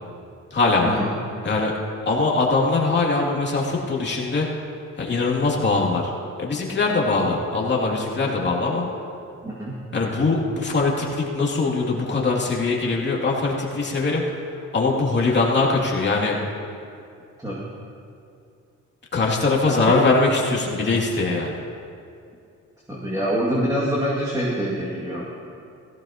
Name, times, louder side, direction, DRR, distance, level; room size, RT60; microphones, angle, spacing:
voice 1, 0.5-1.0 1.4-1.7 2.1-4.5 5.0-6.1 6.4-8.9 9.9-14.4 14.7-16.4 19.1-21.6, left 3 dB, 35° left, -2 dB, 2.6 m, -22 dB
voice 2, 9.4-9.8 17.4-17.6 19.9-20.1 22.9-25.2, equal, 10° right, -6 dB, 2.2 m, -25 dB
16.5 x 15.5 x 2.9 m, 2.4 s
cardioid pair, 90°, 30 cm